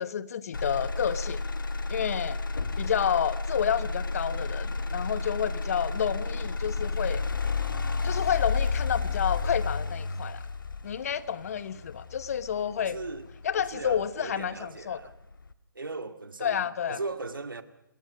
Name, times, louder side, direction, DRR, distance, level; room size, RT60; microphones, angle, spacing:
voice 1, 0.0-1.4 1.9-2.4 2.8-7.2 8.0-10.4 10.8-13.0 13.4-15.0 16.4-17.0, left 8 dB, 45° left, 1.1 m, -30 dB
Motor vehicle (road), 0.5-14.5 15.0-15.5, left 3 dB, 70° left, 1.7 m, -32 dB
voice 2, 12.8-13.3 13.5-15.1 15.7-17.6, right 3 dB, 75° right, 2.2 m, -38 dB
28.0 x 22.0 x 5.2 m
figure-of-eight pair, 135°, 11 cm